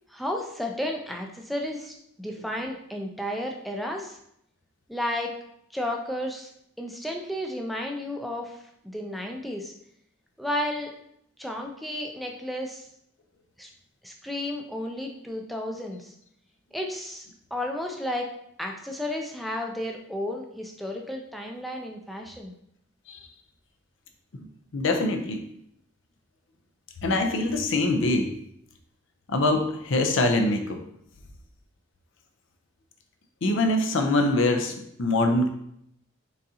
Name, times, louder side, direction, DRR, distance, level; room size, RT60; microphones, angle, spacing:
voice 1, 0.1-4.2 4.9-5.4 5.7-6.5 6.8-8.6 8.8-9.7 10.4-10.9 11.4-12.9 13.6-13.7 14.0-16.1 16.7-17.3 17.5-18.3 18.6-22.5, left 1 dB, ahead, 1 dB, 0.4 m, -32 dB
voice 2, 24.7-25.4 27.0-28.3 29.3-30.8 33.4-35.5, left 2 dB, 60° left, 5 dB, 0.5 m, -24 dB
4.0 x 3.6 x 2.7 m, 0.73 s
head